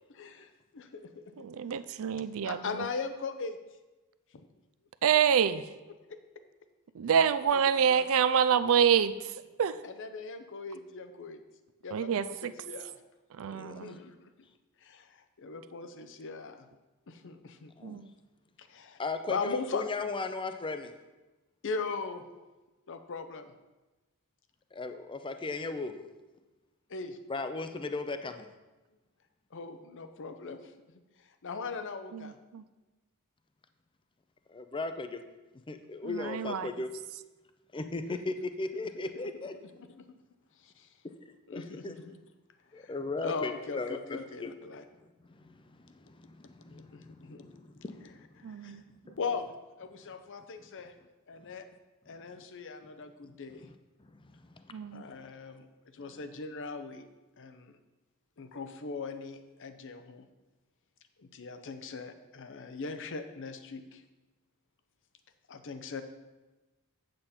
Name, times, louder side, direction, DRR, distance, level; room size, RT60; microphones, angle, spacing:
voice 1, 0.1-1.5 2.4-3.6 7.5-8.1 9.8-11.4 11.8-12.9 13.7-14.3 14.8-16.7 17.1-17.7 18.6-19.0 19.3-19.8 21.6-22.3 22.9-23.5 26.9-27.2 29.5-30.7 31.4-32.4 39.9-40.1 40.6-40.9 41.5-42.2 42.7-44.8 46.7-47.5 48.4-48.8 49.2-49.5 49.8-50.9 51.3-51.6 52.1-53.7 54.9-55.7 55.9-57.1 57.4-57.8 58.4-60.3 61.2-64.0 65.5-66.0, left 4 dB, 60° left, 9 dB, 0.7 m, -39 dB
voice 2, 1.4-2.9 5.0-5.6 6.9-9.3 9.6-9.8 11.9-12.5 13.4-14.0 17.8-18.1 32.1-32.6 36.0-36.7 48.4-48.8 54.7-55.0, right 8 dB, 65° right, 13 dB, 0.4 m, -27 dB
voice 3, 19.0-20.9 24.7-25.9 27.3-28.5 34.5-35.2 35.7-36.9 37.7-39.6 41.0-42.0 42.7-44.5 45.0-48.3 48.9-49.2 53.3-53.7 54.0-55.2, left 3 dB, 20° left, 8 dB, 0.5 m, -37 dB
8.1 x 7.7 x 4.3 m, 1.1 s
head